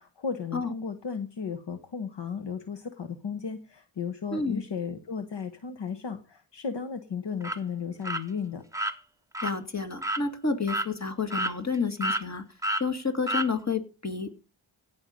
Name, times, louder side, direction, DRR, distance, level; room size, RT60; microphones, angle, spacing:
voice 1, 0.0-8.6, left 6 dB, 60° left, 8 dB, 1.3 m, -35 dB
voice 2, 4.3-4.6 9.4-12.4 12.8-14.4, left 4 dB, 35° left, 7 dB, 2.3 m, -30 dB
sound 1, 7.4-7.6 8.0-8.2 8.7-8.9 9.3-9.5 10.0-10.2 10.7-10.9 11.3-11.8 12.0-12.2 12.6-12.8 13.3-13.5, right 1 dB, 5° right, 1.1 m, -29 dB
17.0 x 5.7 x 5.2 m, 0.32 s
cardioid pair, 75°, 47 cm